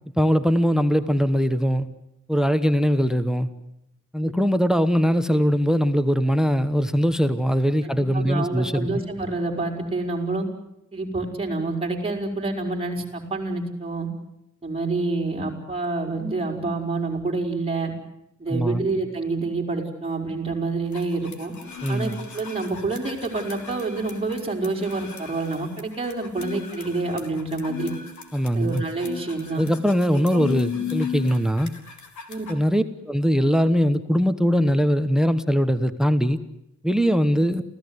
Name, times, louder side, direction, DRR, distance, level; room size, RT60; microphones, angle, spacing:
voice 1, 0.2-1.9 2.3-3.5 4.1-8.9 18.5-18.9 21.8-22.2 28.3-28.8 29.6-31.7 32.5-36.4 36.8-37.6, equal, ahead, 12 dB, 1.1 m, -21 dB
voice 2, 7.8-10.4 10.9-14.1 14.6-17.9 18.4-21.5 21.9-27.9 28.5-29.6 30.3-30.4 30.7-30.9 32.3-32.4 37.2-37.3, right 3 dB, 20° right, 0 dB, 5.0 m, -28 dB
sound 1, 20.9-32.5, left 9 dB, 75° left, 3.8 m, -36 dB
28.5 x 16.5 x 9.7 m, 0.81 s
wide cardioid pair, 150°, 29 cm